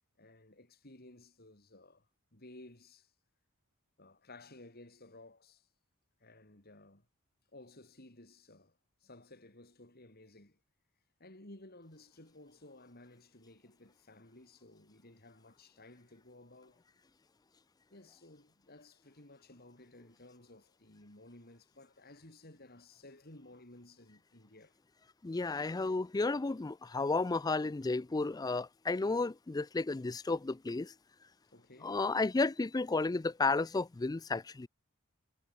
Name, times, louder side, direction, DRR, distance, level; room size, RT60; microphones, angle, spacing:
voice 1, 0.2-3.1 4.0-5.7 6.2-7.1 7.5-10.6 11.2-16.8 17.9-24.8 31.5-32.0, left 2 dB, 45° left, 3.9 m, -56 dB
voice 2, 25.2-30.9 31.8-34.7, left 3 dB, 15° left, 0.4 m, -32 dB
head